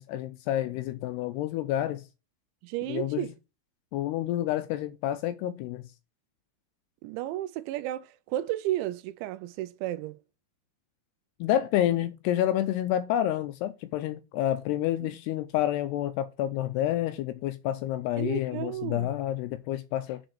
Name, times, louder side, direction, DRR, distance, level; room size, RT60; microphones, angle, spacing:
voice 1, 0.0-2.0 2.9-3.3 3.9-5.9 11.4-20.2, left 12 dB, 85° left, 2.4 m, -29 dB
voice 2, 2.6-3.3 7.0-10.2 15.0-15.1 18.2-19.1, right 14 dB, 85° right, 2.9 m, -33 dB
7.0 x 5.3 x 5.9 m
omnidirectional pair, 5.3 m